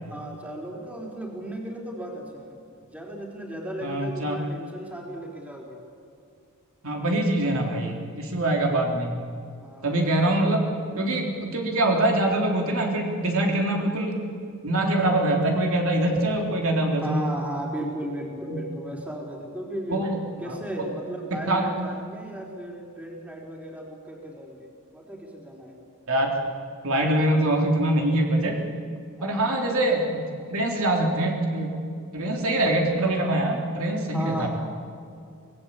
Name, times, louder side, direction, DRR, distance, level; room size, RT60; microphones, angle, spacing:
voice 1, 0.0-5.8 9.6-10.0 17.0-20.0 20.4-25.8 29.2-29.4 34.1-34.5, right 1 dB, 5° right, -1 dB, 4.2 m, -36 dB
voice 2, 3.8-4.4 6.8-9.2 9.8-10.7 11.0-14.3 14.6-17.3 18.5-18.6 19.9-20.2 20.5-20.6 21.5-21.7 26.1-26.3 26.8-28.6 29.2-30.2 30.5-31.7 32.1-34.5, right 1 dB, 65° right, 1 dB, 3.5 m, -24 dB
25.5 x 19.0 x 8.5 m, 2.4 s
head